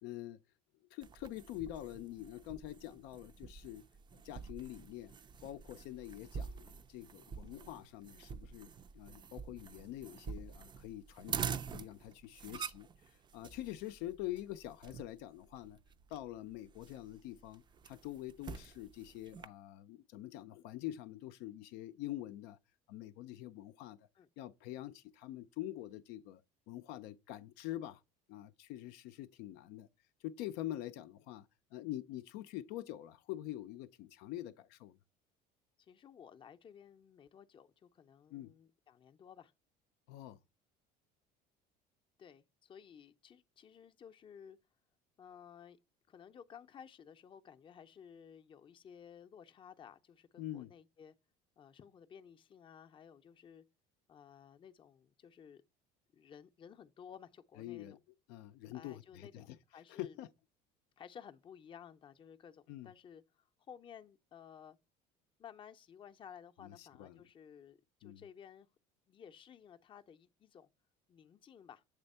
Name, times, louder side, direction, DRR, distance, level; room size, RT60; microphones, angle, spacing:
voice 1, 0.0-0.4 0.9-3.8 4.2-5.1 5.4-8.7 8.9-15.8 16.1-22.6 22.9-24.1 24.4-26.4 26.7-28.0 28.3-29.9 30.2-35.0 38.3-38.5 40.1-40.4 50.4-50.7 57.6-58.0 58.3-59.6 59.9-60.3 62.7-62.9 66.6-67.2 68.0-68.2, left 14 dB, 75° left, 0.5 m, -45 dB
sound 1, 1.0-19.5, right 6 dB, 25° right, 0.4 m, -47 dB
voice 2, 35.8-39.5 42.2-44.6 45.2-45.8 46.1-51.1 51.6-53.6 54.1-55.6 56.1-58.0 58.7-60.2 61.0-64.8 65.4-68.7 69.1-70.7 71.1-71.8, left 8 dB, 30° left, 0.6 m, -55 dB
8.1 x 3.4 x 5.4 m
cardioid pair, 120°, 17 cm